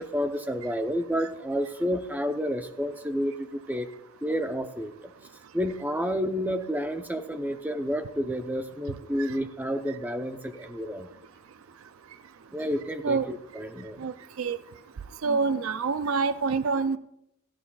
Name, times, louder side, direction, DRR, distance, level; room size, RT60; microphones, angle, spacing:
voice 1, 0.0-3.9 4.2-4.9 5.5-11.1 12.5-14.1 15.3-15.4, equal, 10° right, 7 dB, 0.7 m, -30 dB
voice 2, 14.0-14.6 15.2-17.0, right 4 dB, 70° right, 13 dB, 0.4 m, -27 dB
16.5 x 14.0 x 2.3 m, 0.77 s
head